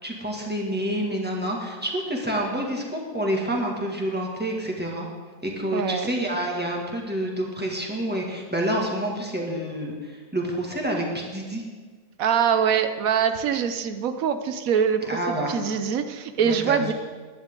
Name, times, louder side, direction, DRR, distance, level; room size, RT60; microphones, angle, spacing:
voice 1, 0.0-5.1 5.4-11.6 15.1-15.6 16.4-16.9, right 1 dB, 5° right, -1 dB, 2.1 m, -28 dB
voice 2, 5.7-6.1 12.2-15.0 15.3-16.9, right 7 dB, 85° right, 9 dB, 1.2 m, -23 dB
19.5 x 10.5 x 3.8 m, 1.5 s
omnidirectional pair, 1.4 m